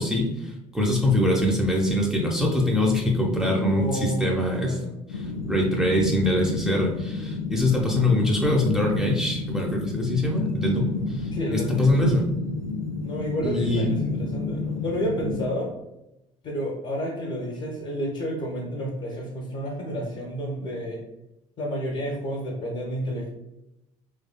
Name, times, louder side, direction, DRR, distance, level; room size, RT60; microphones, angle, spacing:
voice 1, 0.0-4.8 5.1-12.2 13.4-13.9, left 1 dB, 5° right, -2 dB, 0.7 m, -23 dB
voice 2, 3.7-4.3 4.6-4.9 11.3-11.9 13.0-15.7 16.4-21.0 21.6-23.3, equal, 45° left, -3 dB, 1.0 m, -30 dB
sound 1, 5.1-15.5, left 3 dB, 90° left, 0.4 m, -31 dB
3.7 x 3.1 x 2.2 m, 0.90 s
figure-of-eight pair, 55°, 17 cm